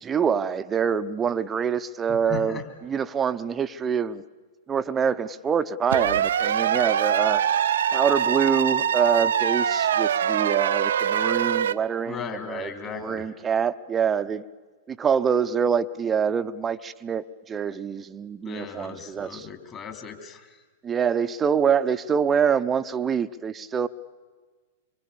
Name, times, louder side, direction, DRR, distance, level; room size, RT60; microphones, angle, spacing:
voice 1, 0.0-4.2 4.7-7.4 7.9-12.7 12.9-14.4 14.9-19.5 20.8-23.9, right 7 dB, 20° right, 12 dB, 1.0 m, -25 dB
voice 2, 2.1-2.6 12.0-13.3 18.4-20.6, left 7 dB, 25° left, 6 dB, 3.3 m, -37 dB
sound 1, 5.9-11.7, right 8 dB, 70° right, 0.7 m, -23 dB
26.0 x 24.0 x 7.1 m, 1.4 s
hypercardioid pair, 105°, 0 cm